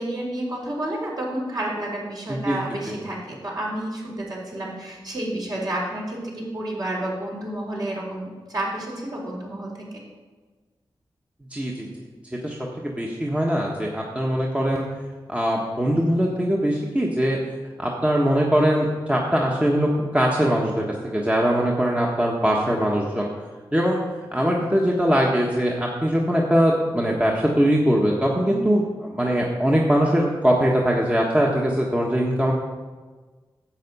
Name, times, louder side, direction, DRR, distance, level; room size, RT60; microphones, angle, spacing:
voice 1, 0.0-9.8 28.5-28.9, right 1 dB, 50° right, -4 dB, 3.9 m, -30 dB
voice 2, 11.5-11.9 12.4-12.6 13.0-14.8 15.3-17.4 17.8-20.8 21.1-23.3 23.7-24.0 24.3-32.5, equal, 15° right, -2 dB, 1.3 m, -21 dB
10.5 x 8.0 x 5.5 m, 1.3 s
wide cardioid pair, 80°, 9 cm